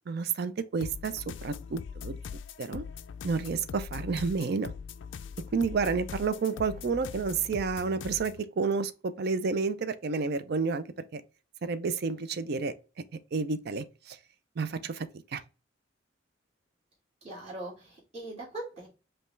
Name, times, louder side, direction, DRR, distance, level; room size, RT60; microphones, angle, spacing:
voice 1, 0.1-2.2 2.6-2.8 3.2-4.7 5.5-10.8 11.1-11.2 11.6-13.0 13.3-14.2 14.6-15.4, right 4 dB, 55° right, 0.4 m, -30 dB
sound 1, 0.8-8.4, left 6 dB, 65° left, 0.3 m, -41 dB
voice 2, 17.2-18.9, right 2 dB, 35° right, 2.0 m, -41 dB
5.2 x 2.3 x 3.2 m
head